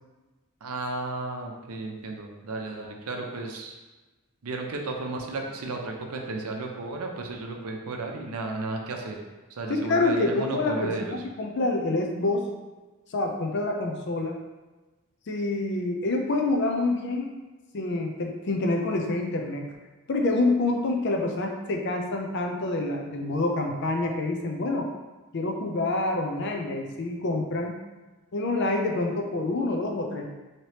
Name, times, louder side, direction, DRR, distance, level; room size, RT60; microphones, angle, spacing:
voice 1, 0.6-3.8 4.4-9.2 9.6-11.2, right 2 dB, 80° right, 1 dB, 0.5 m, -33 dB
voice 2, 9.7-12.5 13.1-14.4 15.3-17.3 17.7-19.6 20.1-24.9 25.3-27.8 28.3-30.3, left 2 dB, 50° left, 2 dB, 0.4 m, -27 dB
3.2 x 2.8 x 2.9 m, 1.2 s
head